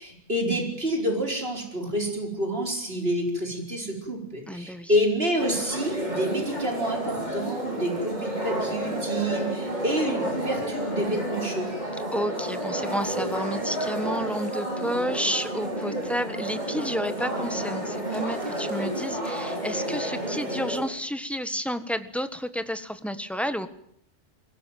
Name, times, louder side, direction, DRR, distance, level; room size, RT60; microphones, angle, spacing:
voice 1, 0.0-11.7, equal, 60° right, 2 dB, 5.1 m, -28 dB
voice 2, 4.5-4.9 12.1-23.7, equal, ahead, 10 dB, 1.4 m, -31 dB
sound 1, 5.4-20.8, right 1 dB, 40° right, 5.8 m, -30 dB
23.0 x 17.0 x 9.4 m, 0.69 s
omnidirectional pair, 1.2 m